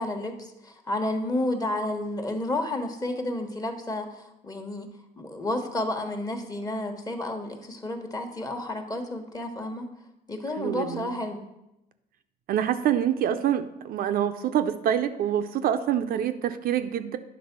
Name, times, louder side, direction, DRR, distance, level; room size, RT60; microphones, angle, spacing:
voice 1, 0.0-9.9 10.3-11.4, left 1 dB, 25° left, 5 dB, 1.2 m, -31 dB
voice 2, 10.6-11.2 12.5-17.2, right 10 dB, 70° right, 8 dB, 0.5 m, -26 dB
9.5 x 3.6 x 5.9 m, 0.90 s
cardioid pair, 90°, 16 cm